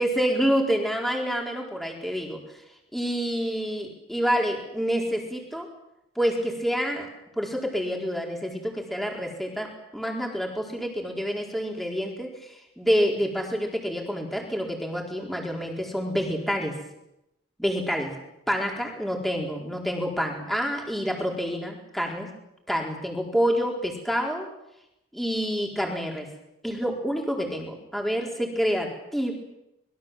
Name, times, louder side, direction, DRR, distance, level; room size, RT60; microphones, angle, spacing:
voice 1, 0.0-2.4 2.9-5.7 6.2-7.1 7.4-9.7 9.9-16.7 17.6-18.1 18.5-22.3 22.7-24.5 25.1-26.3 26.6-29.3, equal, ahead, 0 dB, 4.3 m, -27 dB
25.5 x 21.5 x 7.6 m, 0.85 s
head